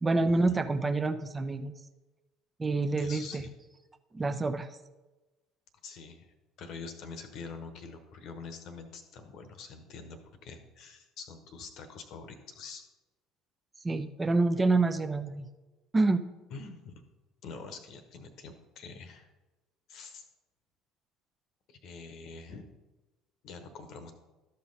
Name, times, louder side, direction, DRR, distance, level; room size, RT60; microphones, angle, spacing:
voice 1, 0.0-1.7 2.6-3.5 4.1-4.7 13.8-15.5 15.9-16.2, right 3 dB, 20° right, 10 dB, 0.7 m, -27 dB
voice 2, 3.0-3.5 5.8-6.3 6.6-12.8 16.5-17.0 17.4-19.3 19.9-20.2 21.7-22.7 23.4-24.1, left 4 dB, 50° left, 8 dB, 1.1 m, -45 dB
13.0 x 5.5 x 4.0 m, 1.1 s
figure-of-eight pair, 60°, 0 cm